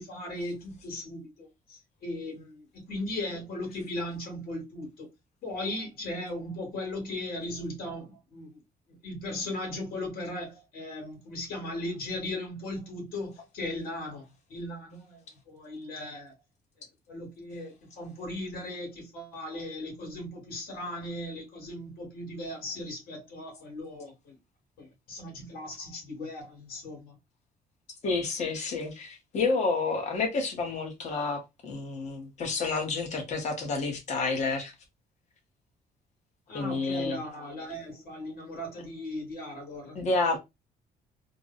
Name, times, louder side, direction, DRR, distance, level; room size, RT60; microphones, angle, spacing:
voice 1, 0.0-5.1 5.4-8.6 9.0-15.2 15.5-16.3 17.1-24.4 24.8-27.1 36.5-40.0, left 1 dB, 65° left, 2.1 m, -37 dB
voice 2, 28.0-34.7 36.5-37.2 39.9-40.4, left 3 dB, 45° left, 1.3 m, -29 dB
3.5 x 2.3 x 3.9 m
cardioid pair, 175°, 16 cm